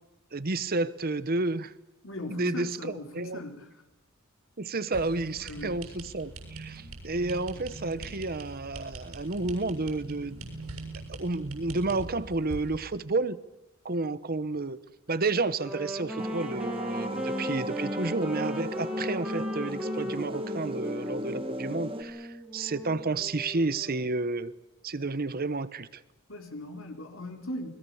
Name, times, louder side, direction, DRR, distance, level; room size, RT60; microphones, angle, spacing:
voice 1, 0.3-1.7 2.3-3.4 4.6-10.5 11.1-13.4 13.8-14.8 15.1-24.5 24.8-26.0, right 3 dB, 45° right, 1.0 m, -31 dB
voice 2, 2.0-3.7 5.5-5.7 26.3-27.7, left 1 dB, 65° left, 4.1 m, -39 dB
sound 1, 4.9-12.8, right 2 dB, 85° right, 7.4 m, -42 dB
Wind instrument woodwind instrument, 15.5-24.2, left 1 dB, 5° right, 2.7 m, -38 dB
sound 2, 16.2-22.0, equal, 25° right, 2.3 m, -35 dB
29.0 x 21.5 x 7.2 m
head